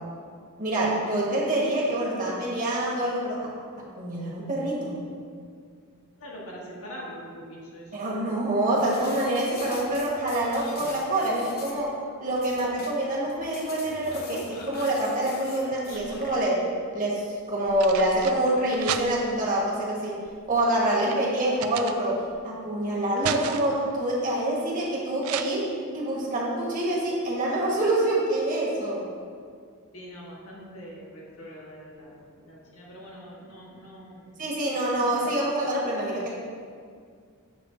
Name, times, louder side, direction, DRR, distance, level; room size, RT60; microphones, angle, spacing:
voice 1, 0.6-3.5 4.0-5.0 7.9-11.9 12.2-16.6 16.9-20.2 20.5-29.1 34.4-36.3, right 1 dB, 35° right, -5 dB, 1.4 m, -26 dB
voice 2, 6.1-8.0 29.9-34.5 35.0-35.5, equal, 65° left, -4 dB, 1.4 m, -43 dB
sound 1, 8.7-16.4, left 3 dB, 45° left, 0.7 m, -43 dB
sound 2, 15.7-16.5 17.4-19.5 20.2-22.4 22.8-23.9 25.2-25.4, right 9 dB, 65° right, 0.3 m, -35 dB
6.9 x 3.4 x 5.0 m, 2.1 s
head